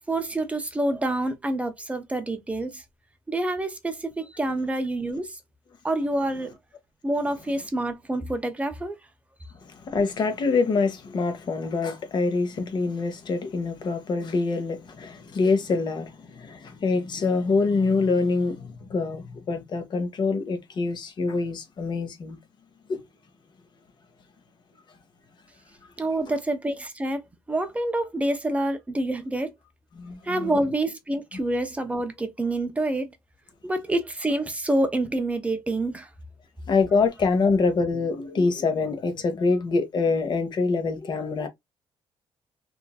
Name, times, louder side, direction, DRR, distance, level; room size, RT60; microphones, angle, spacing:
voice 1, 0.1-2.8 3.3-5.4 5.8-6.6 7.0-9.0 26.0-27.2 27.5-29.5 30.2-33.1 33.6-36.1, right 1 dB, 15° right, 0.6 m, -27 dB
voice 2, 9.6-22.4 22.9-23.0 29.9-30.5 36.7-41.5, left 4 dB, 45° left, 0.9 m, -25 dB
3.0 x 2.6 x 2.3 m
cardioid pair, 125°, 10 cm